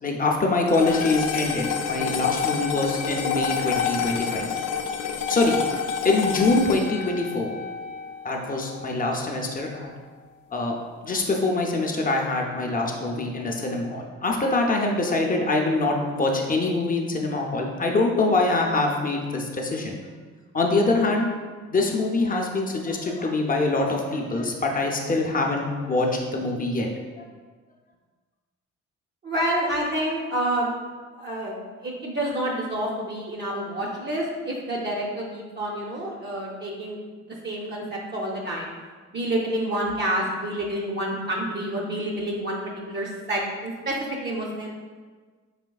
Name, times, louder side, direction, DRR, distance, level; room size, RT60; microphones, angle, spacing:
voice 1, 0.0-4.5 5.3-5.6 6.0-7.5 8.2-9.9 10.5-10.7 11.0-20.0 20.5-21.3 21.7-26.9, left 2 dB, 30° left, 1 dB, 0.5 m, -24 dB
sound 1, 0.7-9.2, left 6 dB, 80° left, 0.5 m, -29 dB
voice 2, 29.2-30.8 31.2-31.6 31.8-37.0 37.4-38.7 39.1-42.6 42.9-44.0 44.2-44.7, right 1 dB, 35° right, -3 dB, 0.6 m, -28 dB
4.9 x 3.1 x 2.3 m, 1.4 s
cardioid pair, 90°, 30 cm